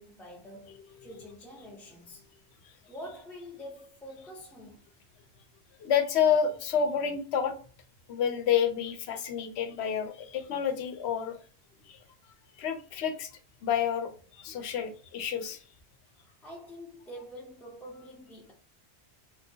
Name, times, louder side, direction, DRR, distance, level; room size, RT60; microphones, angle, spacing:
voice 1, 0.0-2.3 2.9-4.8 16.4-18.5, equal, ahead, 0.7 m, -46 dB
voice 2, 5.8-7.5 8.1-11.4 11.8-13.3 13.6-15.7, left 8 dB, 85° left, 0.9 m, -29 dB
3.3 x 2.6 x 2.6 m
omnidirectional pair, 1.1 m